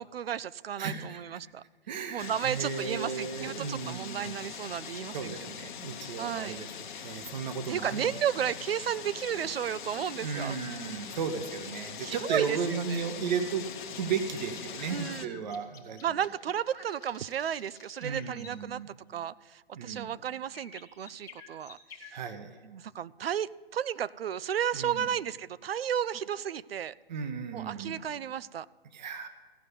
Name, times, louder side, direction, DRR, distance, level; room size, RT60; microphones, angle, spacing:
voice 1, 0.0-1.6 2.1-5.4 6.2-6.6 7.7-10.6 12.0-13.0 14.9-15.4 16.0-18.8 19.1-22.2 22.6-26.9 27.5-28.7, right 9 dB, 75° right, 20 dB, 0.5 m, -33 dB
voice 2, 0.8-1.2 1.9-4.4 5.1-6.7 6.9-8.1 10.2-13.7 14.0-16.0 18.0-18.9 19.7-20.1 22.1-22.6 24.7-25.1 27.1-28.0 28.9-29.3, right 6 dB, 45° right, 9 dB, 1.0 m, -35 dB
sound 1, 2.2-15.3, left 8 dB, 55° left, 0.9 m, -42 dB
sound 2, 13.7-18.5 20.5-22.1, left 7 dB, 10° left, 0.9 m, -51 dB
15.0 x 5.4 x 8.1 m, 1.4 s
hypercardioid pair, 140°, 30 cm